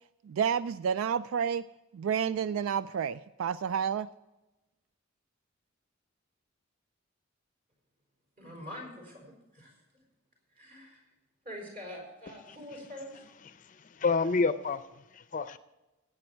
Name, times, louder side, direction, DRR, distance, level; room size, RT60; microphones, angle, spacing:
voice 1, 0.3-1.6 1.9-4.1, right 7 dB, 90° right, 16 dB, 0.3 m, -30 dB
voice 2, 8.4-10.0 10.5-11.0 11.4-13.2, equal, 45° right, 1 dB, 5.1 m, -45 dB
voice 3, 13.4-15.6, left 4 dB, 40° left, 12 dB, 0.5 m, -30 dB
16.0 x 8.8 x 4.5 m, 1.0 s
head